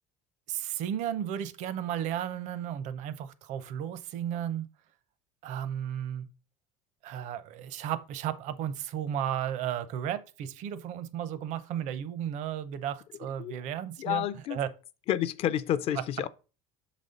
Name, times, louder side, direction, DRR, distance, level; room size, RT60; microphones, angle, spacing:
voice 1, 0.5-4.7 5.4-6.3 7.0-14.2 14.5-14.7, right 10 dB, 55° right, 0.6 m, -34 dB
voice 2, 14.0-14.6 15.1-16.3, left 11 dB, 45° left, 0.4 m, -29 dB
6.1 x 4.1 x 5.0 m
cardioid pair, 145°, 14 cm